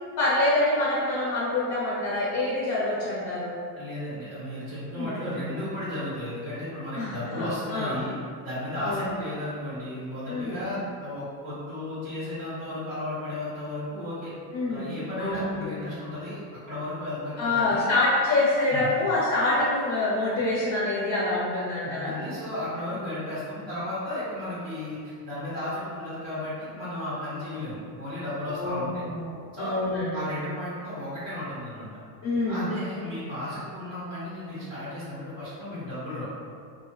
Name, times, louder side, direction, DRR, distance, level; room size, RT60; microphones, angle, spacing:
voice 1, 0.2-3.6 4.9-5.1 6.9-8.0 8.8-9.1 10.3-10.6 14.5-14.9 15.2-15.6 17.4-22.1 28.5-30.3 32.2-32.7, left 2 dB, 40° left, -7 dB, 0.4 m, -26 dB
voice 2, 3.8-8.1 8.4-14.3 14.7-16.4 16.7-17.9 18.7-18.9 21.8-28.9 29.5-29.7 30.1-32.0 32.5-36.3, left 1 dB, 75° right, -11 dB, 1.1 m, -34 dB
2.7 x 2.3 x 2.2 m, 2.2 s
supercardioid pair, 135°, 49 cm